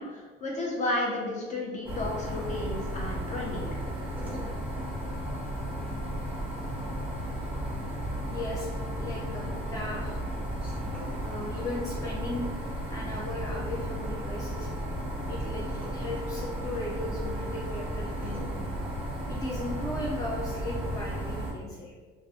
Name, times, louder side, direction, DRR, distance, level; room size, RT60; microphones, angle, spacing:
voice 1, 0.0-3.8, left 2 dB, 35° left, -2 dB, 0.8 m, -32 dB
sound 1, 1.8-21.5, equal, 5° right, 1.1 m, -34 dB
voice 2, 8.3-8.7 9.0-10.5 11.2-12.5 12.9-14.9 15.3-18.7 19.3-21.9, left 1 dB, 15° left, -4 dB, 0.4 m, -37 dB
2.4 x 2.4 x 3.6 m, 1.4 s
cardioid pair, 110°, 20 cm